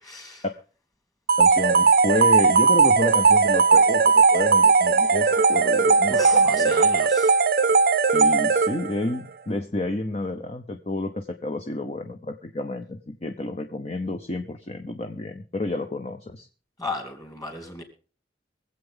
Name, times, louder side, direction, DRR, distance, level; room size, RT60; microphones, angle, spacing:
voice 1, 0.0-0.4 6.1-7.3 16.8-17.8, left 2 dB, 20° left, 4 dB, 2.9 m, -35 dB
sound 1, 1.3-9.0, right 4 dB, 55° right, 0.6 m, -18 dB
voice 2, 1.4-6.7 8.1-16.5, left 2 dB, 35° left, 6 dB, 0.8 m, -30 dB
23.5 x 8.0 x 3.8 m, 0.38 s
head